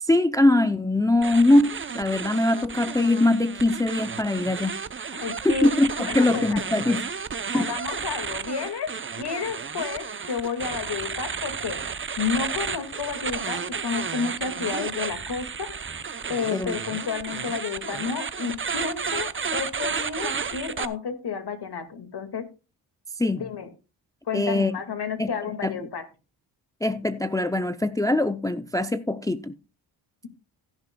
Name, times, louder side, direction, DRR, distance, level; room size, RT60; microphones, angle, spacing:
voice 1, 0.0-4.8 5.4-7.0 7.5-7.7 16.5-16.8 23.2-23.4 24.3-24.7 25.2-25.3 25.6-25.8 26.8-29.5, left 2 dB, 10° left, 0.5 m, -22 dB
sound 1, 1.2-20.9, right 6 dB, 25° right, 0.7 m, -32 dB
voice 2, 5.1-5.7 6.0-6.6 7.5-11.8 12.2-15.7 16.3-22.5 23.4-23.7 24.3-26.1, left 6 dB, 60° left, 2.2 m, -31 dB
16.0 x 10.5 x 2.3 m
cardioid pair, 80°, 45 cm